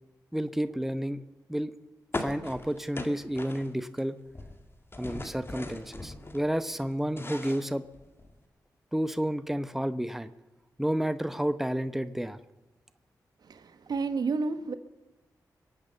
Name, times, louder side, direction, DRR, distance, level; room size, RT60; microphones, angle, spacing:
voice 1, 0.3-1.2 1.5-1.7 2.2-4.2 5.0-7.8 8.9-10.3 10.8-12.4, equal, 5° right, 0.9 m, -30 dB
sound 1, 2.1-4.0 4.3-6.4 6.8-8.4, left 2 dB, 35° left, 2.1 m, -39 dB
voice 2, 13.4-14.7, right 4 dB, 70° right, 1.2 m, -31 dB
22.5 x 8.7 x 6.8 m
cardioid pair, 60°, 7 cm